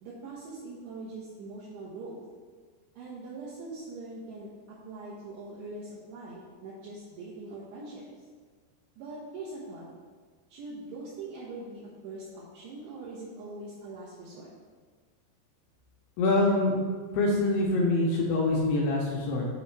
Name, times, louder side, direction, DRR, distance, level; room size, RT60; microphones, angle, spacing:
voice 1, 0.0-2.2 3.0-8.3 9.0-9.8 10.5-14.5, right 2 dB, 75° right, -7 dB, 2.9 m, -42 dB
voice 2, 16.2-16.8 17.1-19.5, left 2 dB, 80° left, -2 dB, 2.5 m, -25 dB
7.9 x 3.0 x 4.6 m, 1.5 s
omnidirectional pair, 5.1 m